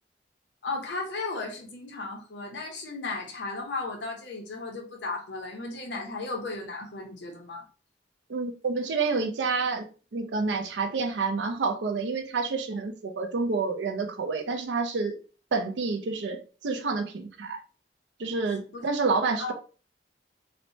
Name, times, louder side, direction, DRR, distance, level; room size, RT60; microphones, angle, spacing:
voice 1, 0.6-7.6 18.7-18.8 19.4-19.5, left 3 dB, 90° left, 0.6 m, -35 dB
voice 2, 8.3-9.9 10.1-15.2 15.5-17.6 18.2-19.5, right 4 dB, 90° right, 0.4 m, -28 dB
3.1 x 2.0 x 2.6 m
head